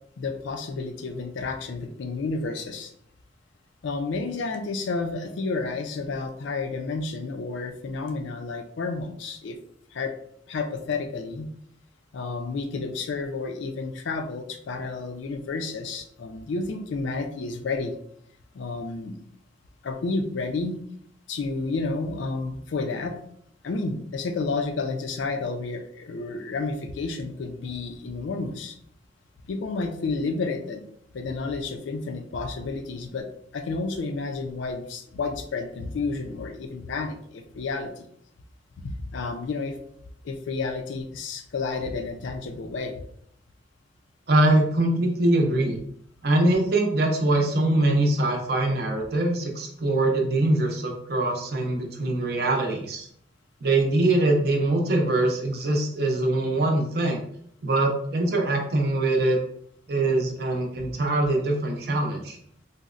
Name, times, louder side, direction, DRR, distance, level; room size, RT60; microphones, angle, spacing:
voice 1, 0.2-2.9 3.8-9.6 9.9-10.2 10.5-11.5 12.1-17.9 18.5-19.2 19.8-20.8 21.3-23.2 23.6-28.8 29.5-30.8 31.1-33.3 33.5-38.1 38.8-39.8 40.2-43.0, left 3 dB, 80° left, 6 dB, 0.4 m, -31 dB
voice 2, 44.3-45.8 46.2-53.1 53.6-57.2 57.6-59.4 59.9-62.4, right 2 dB, 55° right, 2 dB, 0.6 m, -23 dB
3.9 x 2.1 x 2.4 m, 0.66 s
head